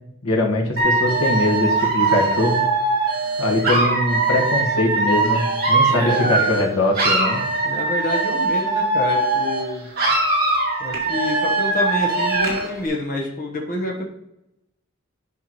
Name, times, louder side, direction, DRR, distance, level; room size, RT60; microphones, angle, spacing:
voice 1, 0.2-2.6 3.4-7.4, left 1 dB, 85° left, -1 dB, 1.5 m, -22 dB
Dog / Alarm, 0.8-6.7 6.9-9.7 10.0-12.7, right 3 dB, 45° right, 2.2 m, -21 dB
voice 2, 5.9-6.3 7.6-9.9 10.8-14.0, left 1 dB, 40° left, -1 dB, 1.0 m, -27 dB
10.0 x 5.7 x 3.0 m, 0.85 s
head